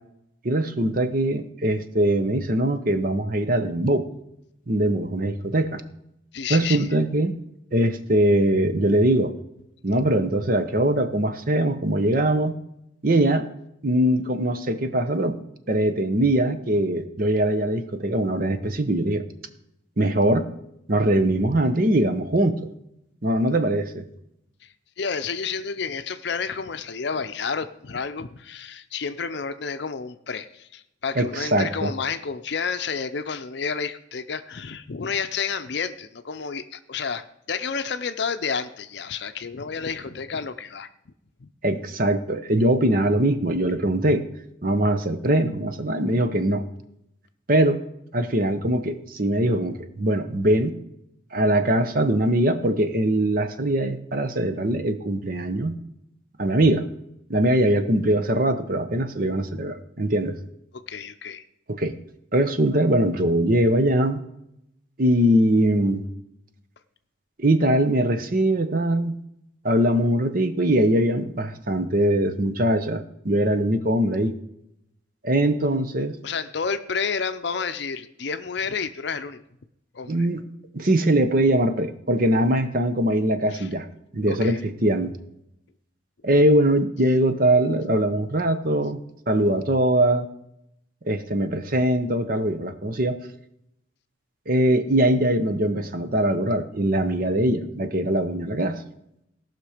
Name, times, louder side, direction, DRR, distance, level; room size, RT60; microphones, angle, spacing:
voice 1, 0.4-4.1 4.7-5.8 6.5-7.3 7.7-9.3 9.8-12.5 13.0-13.5 13.8-15.4 15.7-19.2 20.0-20.5 20.9-22.7 23.2-24.0 31.1-31.9 41.6-44.3 44.6-46.7 47.5-47.8 48.1-50.8 51.3-55.8 56.4-56.9 57.3-60.4 61.7-61.9 62.3-64.2 65.0-66.0 67.4-69.2 69.6-74.3 75.2-76.2 80.1-80.5 80.7-83.8 84.1-85.1 86.2-89.0 89.3-90.3 91.1-93.2 94.5-98.8, right 1 dB, 45° right, 9 dB, 0.9 m, -22 dB
voice 2, 6.3-6.9 24.6-40.9 41.4-41.5 60.7-61.4 76.2-79.4 79.9-80.3 83.5-83.7 84.3-84.6, left 5 dB, 60° left, 10 dB, 0.6 m, -30 dB
17.5 x 6.0 x 5.0 m, 0.79 s
head